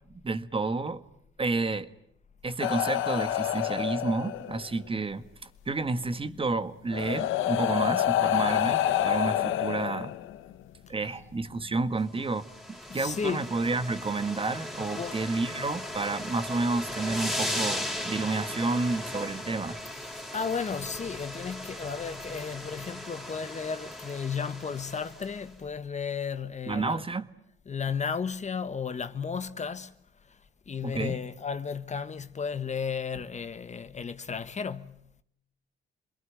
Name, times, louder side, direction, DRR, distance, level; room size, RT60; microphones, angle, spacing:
voice 1, 0.2-1.0 1.4-1.9 2.4-10.1 10.9-12.5 12.9-19.8 26.7-27.3 30.8-31.2, right 3 dB, 25° right, 1.5 m, -30 dB
sound 1, 2.6-4.7 6.1-6.2 6.9-10.5 11.6-11.8, left 12 dB, 90° left, 1.2 m, -28 dB
sound 2, 12.2-25.4, left 1 dB, ahead, 4.0 m, -37 dB
voice 2, 12.9-13.5 14.7-15.2 15.6-15.7 19.9-27.0 27.7-29.9 30.7-35.0, left 6 dB, 35° left, 1.3 m, -34 dB
28.0 x 21.5 x 9.3 m
cardioid pair, 90°, 20 cm